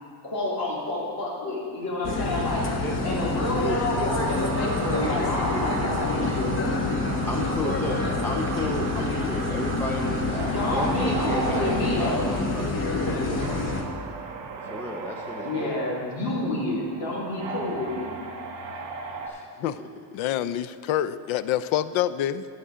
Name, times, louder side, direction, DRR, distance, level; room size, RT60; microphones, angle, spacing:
voice 1, 0.2-2.6 3.0-6.7 7.2-7.3 8.5-8.7 9.1-9.2 10.5-12.3 15.4-18.1, left 1 dB, 50° left, -6 dB, 2.6 m, -29 dB
sound 1, 2.0-13.8, left 3 dB, 25° left, 0.9 m, -27 dB
voice 2, 2.8-3.2 3.6-4.3 7.3-13.9 14.7-15.8 19.3-19.7, left 1 dB, 5° left, 1 dB, 0.4 m, -34 dB
sound 2, 4.1-14.9, right 10 dB, 85° right, 0.8 m, -40 dB
sound 3, 10.3-19.3, right 3 dB, 65° right, 1.7 m, -38 dB
voice 3, 20.1-22.4, left 11 dB, 90° left, 14 dB, 0.6 m, -26 dB
11.5 x 8.4 x 5.0 m, 2.3 s
cardioid pair, 180°, 46 cm